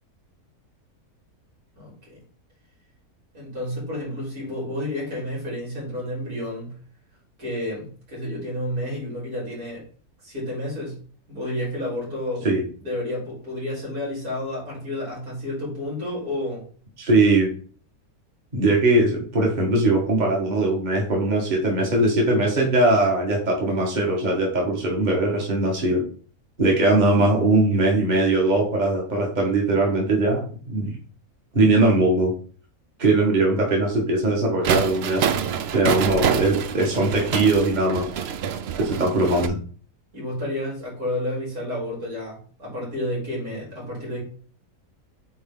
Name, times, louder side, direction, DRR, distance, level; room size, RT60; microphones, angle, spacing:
voice 1, 1.8-2.2 3.3-6.7 7.4-9.8 10.2-10.9 11.3-12.5 12.8-16.6 40.1-44.2, left 1 dB, 80° right, -4 dB, 4.5 m, -30 dB
voice 2, 17.0-17.5 18.5-26.0 26.6-31.0 31.5-32.3 33.0-35.3 35.7-38.1 38.8-39.6, right 2 dB, 30° right, -1 dB, 1.6 m, -20 dB
sound 1, 34.6-39.5, right 8 dB, 60° right, 0.6 m, -26 dB
8.5 x 3.6 x 3.8 m, 0.43 s
omnidirectional pair, 1.6 m